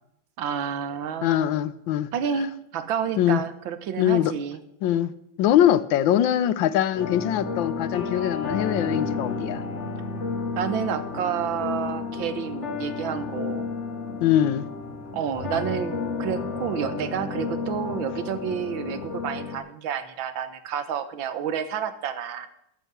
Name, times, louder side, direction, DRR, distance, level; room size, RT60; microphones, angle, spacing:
voice 1, 0.4-1.5 2.1-4.6 10.6-13.7 15.1-22.5, right 8 dB, 85° right, 12 dB, 1.7 m, -30 dB
voice 2, 1.2-2.1 3.2-3.4 4.0-4.3 4.8-5.1 5.4-9.6 14.2-14.6, left 11 dB, 85° left, 15 dB, 1.4 m, -22 dB
sound 1, 6.9-19.6, left 4 dB, 40° left, 1.8 m, -32 dB
13.5 x 7.0 x 7.4 m, 0.80 s
omnidirectional pair, 2.1 m